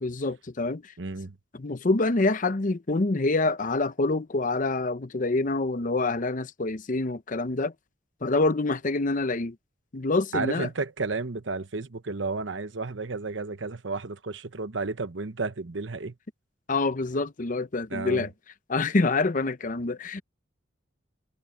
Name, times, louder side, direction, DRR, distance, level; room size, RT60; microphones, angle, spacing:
voice 1, 0.0-0.9 1.5-7.7 8.2-9.6 9.9-10.7 16.7-18.3 18.7-20.2, left 3 dB, 45° left, 0.8 m, -26 dB
voice 2, 1.0-1.4 10.3-16.1 17.9-18.3, right 3 dB, 85° right, 1.0 m, -32 dB
head